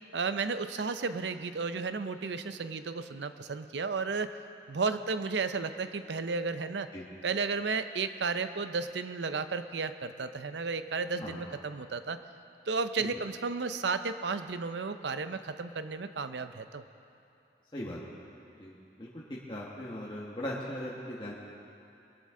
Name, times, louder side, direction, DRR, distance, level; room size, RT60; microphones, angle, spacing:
voice 1, 0.1-4.3 4.7-6.9 7.2-12.2 12.7-16.8, right 4 dB, 85° right, 10 dB, 0.6 m, -33 dB
voice 2, 18.6-19.2 19.5-21.3, left 1 dB, 25° left, -6 dB, 1.4 m, -39 dB
21.5 x 11.5 x 3.8 m, 2.6 s
head